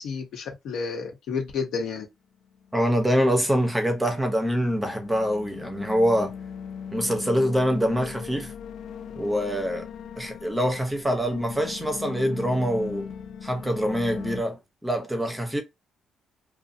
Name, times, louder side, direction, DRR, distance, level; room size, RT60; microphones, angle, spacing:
voice 1, 0.0-2.1, left 5 dB, 85° left, 1.1 m, -31 dB
sound 1, 2.5-14.4, left 7 dB, 70° left, 0.4 m, -39 dB
voice 2, 2.7-6.3 6.9-8.5 9.1-9.9 10.2-13.1 13.4-15.6, equal, 10° right, 0.7 m, -25 dB
2.6 x 2.2 x 2.6 m
cardioid pair, 145°, 0 cm